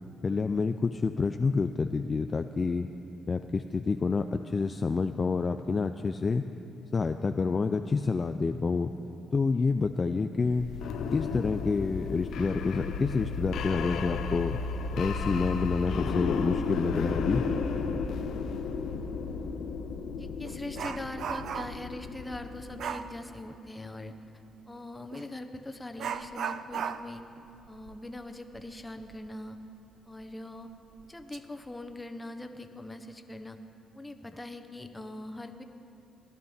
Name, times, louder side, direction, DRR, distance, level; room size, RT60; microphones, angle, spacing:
voice 1, 0.2-2.9 3.3-6.4 6.9-8.9 9.3-10.7 11.1-14.6 14.9-17.5, left 4 dB, 35° left, 7 dB, 0.3 m, -28 dB
sound 1, 10.4-23.2, left 5 dB, 75° left, 0.6 m, -34 dB
Dog, 19.4-19.6 20.0-21.9 22.8-23.1 25.1-25.3 26.0-29.3 29.6-29.7 30.2-30.3 31.0-31.4 31.7-32.0, right 8 dB, 65° right, 0.3 m, -37 dB
voice 2, 20.2-24.1 24.7-27.2 27.7-29.6 30.1-30.7 31.1-33.6 33.9-35.6, left 1 dB, 15° left, 7 dB, 0.8 m, -42 dB
16.0 x 11.0 x 3.5 m, 2.8 s
cardioid pair, 90°, 0 cm